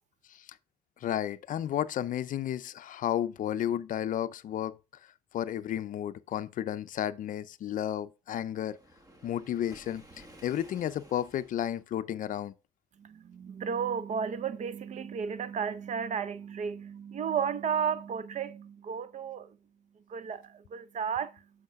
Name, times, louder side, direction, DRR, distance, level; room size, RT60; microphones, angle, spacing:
voice 1, 1.0-4.8 5.3-8.8 9.2-10.0 10.4-12.5, left 11 dB, 50° left, 0.5 m, -32 dB
Waves surf, 8.5-11.8, right 1 dB, 20° right, 1.4 m, -54 dB
voice 2, 13.0-19.6 20.1-21.4, right 7 dB, 45° right, 0.6 m, -33 dB
7.5 x 6.4 x 3.5 m
cardioid pair, 110°, 17 cm